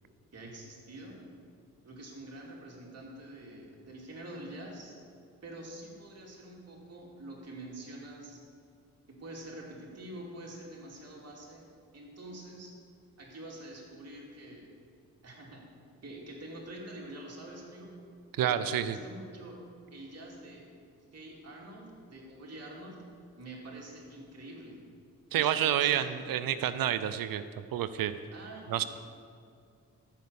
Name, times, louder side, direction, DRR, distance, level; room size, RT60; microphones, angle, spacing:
voice 1, 0.3-1.2 1.8-5.0 5.4-8.4 9.1-11.6 11.9-12.7 13.2-14.7 15.2-15.6 16.0-17.9 18.4-19.6 19.9-20.6 21.1-23.0 23.4-24.8 25.3-26.5 28.3-28.9, right 1 dB, 45° right, -3 dB, 2.8 m, -46 dB
voice 2, 18.4-19.0 25.3-27.4 27.7-28.2 28.7-28.8, right 10 dB, 70° right, 13 dB, 0.6 m, -28 dB
13.0 x 5.4 x 7.0 m, 2.3 s
supercardioid pair, 55°, 35 cm